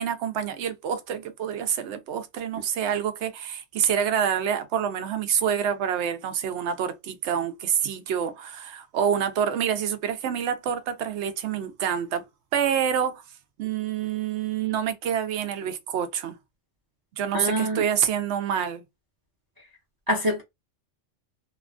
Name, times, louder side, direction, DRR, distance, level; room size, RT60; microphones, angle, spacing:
voice 1, 0.0-12.2 12.5-13.2 13.6-16.4 17.1-18.8, right 8 dB, 70° right, 0.8 m, -27 dB
voice 2, 17.3-17.8 20.1-20.4, equal, 25° right, 0.5 m, -25 dB
2.8 x 2.2 x 2.4 m
omnidirectional pair, 1.3 m